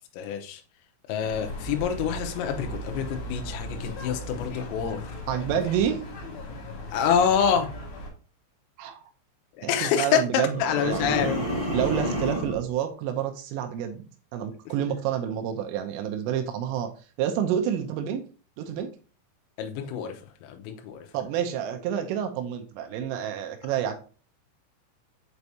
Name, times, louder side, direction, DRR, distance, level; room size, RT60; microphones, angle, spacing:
voice 1, 0.1-0.6 1.1-5.1 5.5-5.6 6.9-7.7 9.6-11.5 19.6-20.2 20.4-21.1, left 7 dB, 85° left, 5 dB, 3.5 m, -26 dB
sound 1, 1.2-8.1, equal, 60° left, 3.7 m, -37 dB
voice 2, 5.3-6.0 8.8-9.0 9.6-11.3 11.7-14.1 14.3-16.9 17.2-18.2 18.6-18.9 21.1-23.9, right 9 dB, 85° right, 6 dB, 3.2 m, -28 dB
sound 2, 10.5-12.6, equal, 10° right, 2.2 m, -29 dB
7.7 x 4.7 x 2.7 m, 0.37 s
omnidirectional pair, 5.9 m